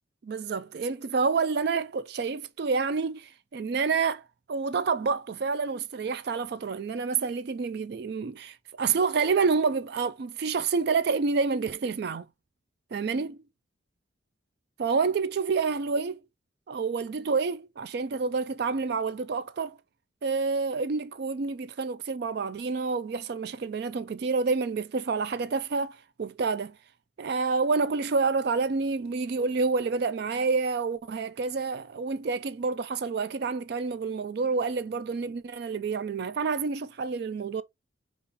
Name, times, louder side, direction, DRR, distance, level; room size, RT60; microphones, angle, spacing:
voice 1, 0.2-4.2 4.5-12.2 12.9-13.4 14.8-16.2 16.7-19.8 20.2-26.8 27.2-37.6, right 4 dB, 55° right, 0.3 m, -28 dB
5.3 x 2.5 x 4.0 m
head